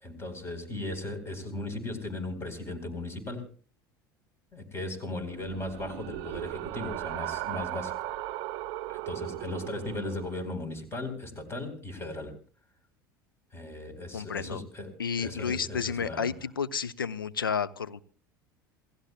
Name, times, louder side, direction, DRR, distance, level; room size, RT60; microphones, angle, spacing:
voice 1, 0.0-3.5 4.5-8.1 8.9-12.4 13.5-16.3, left 2 dB, 20° left, 9 dB, 4.2 m, -37 dB
sound 1, 5.3-10.4, right 16 dB, 50° right, 0.6 m, -37 dB
voice 2, 14.1-14.6 15.0-18.0, left 6 dB, 80° left, 14 dB, 0.7 m, -31 dB
27.5 x 17.0 x 2.3 m, 0.40 s
figure-of-eight pair, 70°, 11 cm